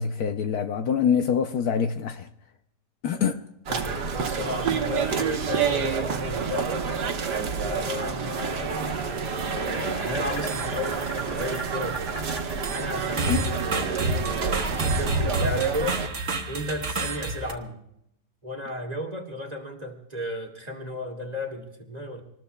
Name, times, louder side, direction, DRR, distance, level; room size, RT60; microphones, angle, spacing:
voice 1, 0.0-2.3 3.0-3.4 13.3-13.4, left 7 dB, 70° left, 1.1 m, -25 dB
voice 2, 3.7-6.9 7.6-12.1 12.7-16.0 16.5-17.8 18.4-22.2, equal, 25° right, 1.9 m, -34 dB
sound 1, 3.7-16.1, right 6 dB, 70° right, 1.7 m, -29 dB
sound 2, 8.5-13.4, right 2 dB, 20° left, 4.9 m, -39 dB
sound 3, 9.1-9.9 10.3-11.2 11.4-17.5, right 2 dB, 45° right, 1.5 m, -30 dB
26.0 x 20.0 x 2.3 m
omnidirectional pair, 1.8 m